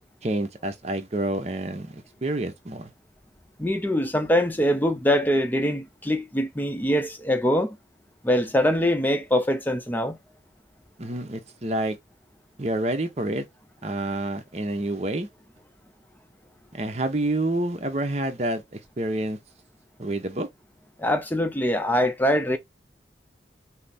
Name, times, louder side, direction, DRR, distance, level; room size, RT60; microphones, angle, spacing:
voice 1, 0.2-2.9 11.0-12.0 12.6-13.4 13.8-15.3 16.7-19.4 20.0-20.5, right 1 dB, 35° right, 0.9 m, -28 dB
voice 2, 3.6-7.8 8.2-10.2 21.0-22.6, equal, 10° left, 0.6 m, -23 dB
5.8 x 2.1 x 4.2 m
head